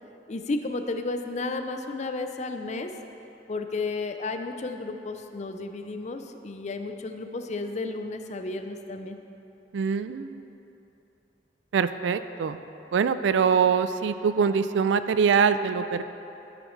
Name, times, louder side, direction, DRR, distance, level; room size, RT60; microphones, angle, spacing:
voice 1, 0.3-2.9 3.5-9.2, left 3 dB, 40° left, 7 dB, 0.5 m, -32 dB
voice 2, 9.7-10.4 11.7-12.6 12.9-16.0, right 6 dB, 85° right, 12 dB, 0.4 m, -23 dB
12.5 x 7.1 x 3.2 m, 3.0 s
head